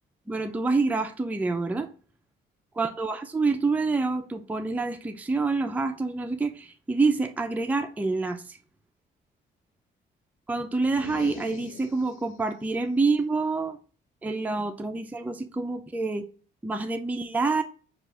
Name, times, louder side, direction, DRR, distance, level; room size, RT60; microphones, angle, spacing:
voice 1, 0.3-1.9 2.8-8.6 10.5-13.8 14.2-16.2 16.6-17.6, right 3 dB, 10° right, 0.4 m, -27 dB
sound 1, 10.8-12.5, left 8 dB, 90° left, 0.6 m, -43 dB
4.7 x 2.4 x 3.7 m
cardioid pair, 90°, 20 cm